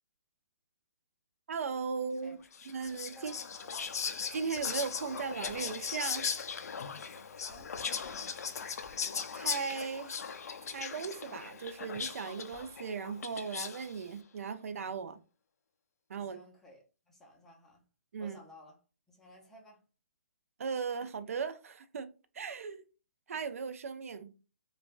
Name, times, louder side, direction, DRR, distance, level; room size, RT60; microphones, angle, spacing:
voice 1, 1.5-2.4 2.7-3.3 4.3-6.3 9.3-10.2 10.7-15.2 16.1-16.4 18.1-18.4 20.6-22.8 23.3-24.3, right 5 dB, 65° right, 0.4 m, -37 dB
Whispering, 2.5-14.0, left 6 dB, 80° left, 0.4 m, -38 dB
voice 2, 3.1-3.9 7.4-8.8 16.2-17.8 18.2-18.8 19.1-19.8, left 1 dB, 5° left, 0.4 m, -56 dB
3.2 x 2.1 x 2.4 m
hypercardioid pair, 170°, 8 cm